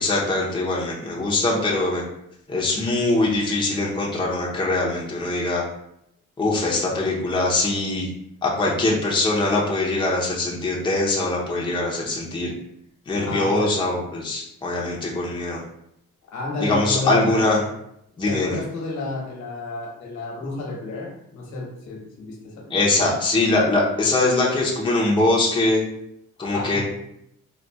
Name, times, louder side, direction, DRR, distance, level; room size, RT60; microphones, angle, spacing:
voice 1, 0.0-2.0 2.5-5.6 6.4-8.1 8.4-12.5 13.1-15.6 16.6-17.6 18.2-18.6 22.7-25.8 26.4-26.8, left 2 dB, 15° left, -3 dB, 0.7 m, -22 dB
voice 2, 13.2-13.8 16.3-17.4 18.3-23.2 26.4-26.8, left 3 dB, 70° left, -1 dB, 1.2 m, -31 dB
4.0 x 2.3 x 2.3 m, 0.78 s
cardioid pair, 90°, 30 cm